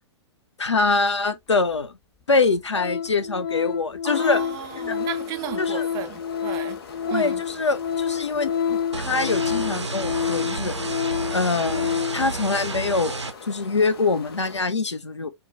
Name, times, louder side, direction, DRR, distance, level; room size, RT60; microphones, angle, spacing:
voice 1, 0.6-2.0 2.3-4.4 4.9-5.0 5.6-5.9 7.1-10.8 11.3-13.2 13.5-15.3, left 3 dB, 85° left, 0.4 m, -24 dB
Organ, 1.7-1.8 2.3-2.4 2.7-12.3 12.6-12.8, left 7 dB, 30° left, 0.5 m, -28 dB
voice 2, 4.0-6.8 7.1-7.4, right 11 dB, 25° right, 0.4 m, -34 dB
sound 1, 4.1-14.6, left 5 dB, 60° left, 0.8 m, -43 dB
sound 2, 8.9-13.3, right 3 dB, 85° right, 0.5 m, -31 dB
2.2 x 2.0 x 3.7 m
figure-of-eight pair, 105°, 14 cm